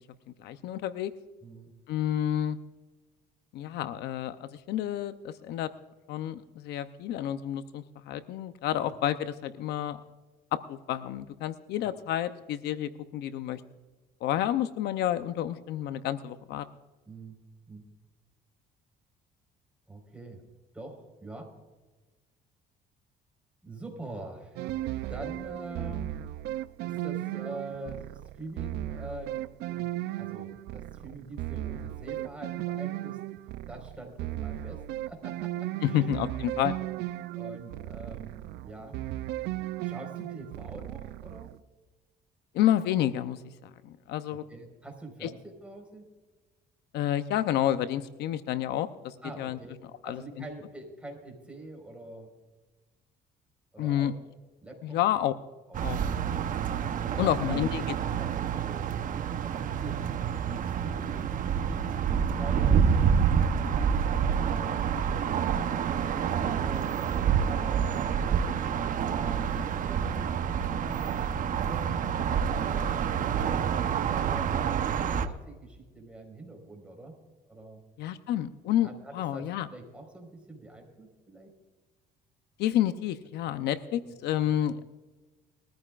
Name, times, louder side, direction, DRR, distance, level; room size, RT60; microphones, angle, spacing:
voice 1, 0.4-1.1 1.9-2.6 3.5-5.7 6.1-10.0 10.5-13.6 14.2-16.7 35.8-36.8 42.5-44.4 45.2-45.3 46.9-49.6 50.0-50.4 53.8-54.1 54.8-55.3 55.8-56.0 57.2-57.8 78.0-79.7 82.6-84.8, left 11 dB, 80° left, 12 dB, 0.7 m, -29 dB
voice 2, 1.4-1.7 8.8-8.9 17.0-17.4 17.7-17.8 19.9-20.4 20.7-21.5 23.6-24.7 25.1-26.2 26.8-28.0 28.3-29.3 29.6-33.2 33.7-36.2 37.3-39.0 39.8-41.5 44.5-46.1 49.2-49.8 50.0-52.3 53.7-54.1 54.6-55.0 57.0-57.9 58.2-58.9 59.4-60.0 60.3-63.1 63.8-64.8 65.8-68.2 69.1-70.3 70.6-72.1 72.6-73.2 73.6-77.2 77.5-77.8 78.8-81.5 82.6-82.8 83.4-83.5 83.8-84.1 84.4-84.6, right 2 dB, 5° right, 1 dB, 4.7 m, -45 dB
sound 1, 24.6-41.6, right 14 dB, 80° right, 0.5 m, -36 dB
sound 2, 55.7-75.3, right 7 dB, 50° right, 0.9 m, -28 dB
21.5 x 14.0 x 2.5 m, 1.2 s
cardioid pair, 110°, 17 cm